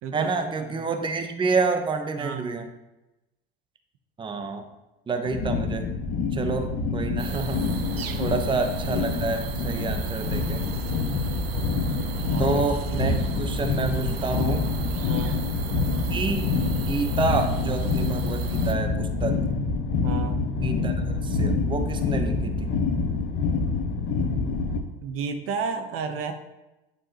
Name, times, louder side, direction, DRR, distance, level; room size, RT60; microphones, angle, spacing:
voice 1, 0.1-2.7 4.2-4.7 5.1-5.9 6.3-7.6 8.2-10.6 12.4-14.7 16.1-19.4 20.6-22.7, right 4 dB, 15° right, 6 dB, 0.8 m, -28 dB
voice 2, 2.2-2.5 8.2-8.3 12.2-12.6 15.1-15.4 20.0-20.4 25.0-26.3, right 5 dB, 50° right, 7 dB, 0.8 m, -32 dB
sound 1, 5.3-24.8, left 4 dB, 40° left, 1.0 m, -26 dB
sound 2, 7.2-18.7, right 6 dB, 80° right, 0.6 m, -35 dB
9.1 x 4.9 x 2.9 m, 0.99 s
figure-of-eight pair, 70°, 29 cm